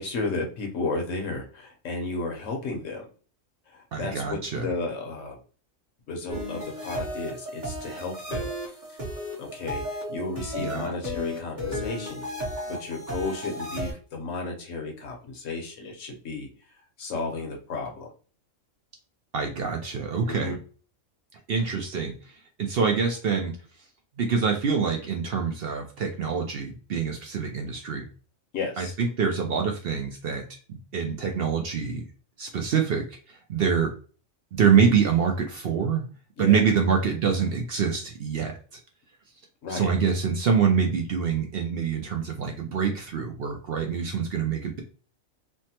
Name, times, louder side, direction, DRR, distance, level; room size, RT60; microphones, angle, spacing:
voice 1, 0.0-3.1 3.7-5.4 6.1-8.5 9.4-12.3 12.7-16.5 17.0-18.1 20.3-20.6 28.5-28.9 36.4-36.6 39.6-39.9, left 3 dB, 70° left, 2 dB, 1.2 m, -33 dB
voice 2, 3.9-4.7 10.6-10.9 19.3-20.6 21.5-22.3 22.6-23.6 24.2-28.1 28.8-32.0 32.4-33.9 34.5-36.0 36.4-38.8 39.7-44.8, right 6 dB, 60° right, 2 dB, 0.6 m, -25 dB
sound 1, 6.3-13.9, left 1 dB, 35° right, 1.1 m, -34 dB
3.3 x 2.1 x 2.7 m, 0.39 s
omnidirectional pair, 1.4 m